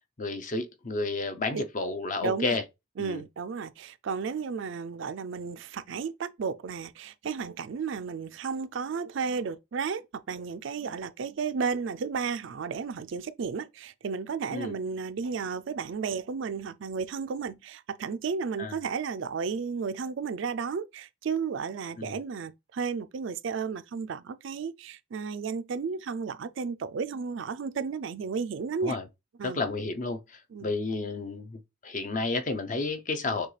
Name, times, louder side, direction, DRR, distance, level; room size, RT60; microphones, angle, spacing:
voice 1, 0.2-2.6 3.0-3.2 14.5-14.7 18.6-18.8 22.0-22.2 28.8-29.0 29.4-33.5, left 3 dB, 35° left, 0.5 m, -31 dB
voice 2, 2.2-2.6 3.0-29.0 29.4-29.6 30.5-30.7, right 5 dB, 60° right, 0.4 m, -33 dB
6.4 x 2.3 x 3.2 m
head